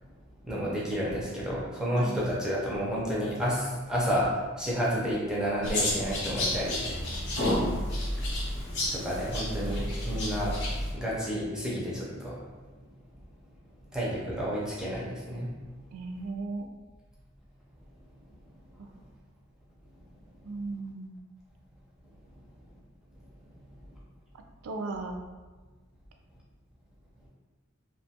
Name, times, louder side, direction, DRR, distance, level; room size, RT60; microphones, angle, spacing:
voice 1, 0.4-6.8 7.3-7.4 8.9-10.6 10.9-12.4 13.9-15.5 23.6-23.7, equal, 5° right, -6 dB, 0.4 m, -30 dB
sound 1, 5.6-10.9, left 1 dB, 55° left, 0.6 m, -30 dB
voice 2, 15.9-16.7 18.8-18.9 20.4-21.1 24.6-25.2, right 3 dB, 75° right, 4 dB, 0.3 m, -36 dB
2.5 x 2.2 x 2.7 m, 1.3 s
head